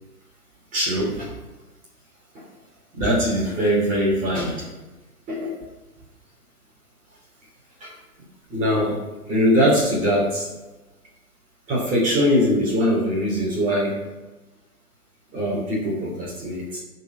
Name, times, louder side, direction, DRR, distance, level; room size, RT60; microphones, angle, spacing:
voice 1, 0.7-1.3 2.3-2.4 2.9-4.6 5.3-5.5 7.8-7.9 8.5-9.0 9.3-10.5 11.7-14.0 15.3-16.8, equal, 15° right, -4 dB, 2.7 m, -22 dB
13.0 x 4.6 x 5.9 m, 1.1 s
figure-of-eight pair, 130°, 46 cm